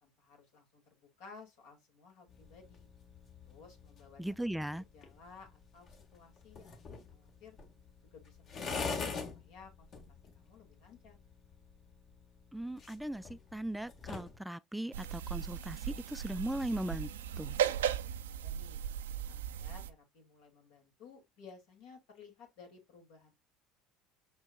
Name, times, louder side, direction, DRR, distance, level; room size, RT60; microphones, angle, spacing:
voice 1, 0.0-2.9 3.4-4.2 4.6-7.6 8.1-9.0 9.3-11.2 18.3-18.8 19.3-23.3, left 5 dB, 75° left, 2.3 m, -57 dB
sound 1, 2.3-14.4, left 4 dB, 50° left, 1.5 m, -46 dB
voice 2, 4.2-4.8 12.5-17.1 17.4-17.6, right 1 dB, 5° right, 0.3 m, -38 dB
sound 2, 14.9-19.9, right 9 dB, 90° right, 0.4 m, -36 dB
5.3 x 4.4 x 2.2 m
hypercardioid pair, 75°, 0 cm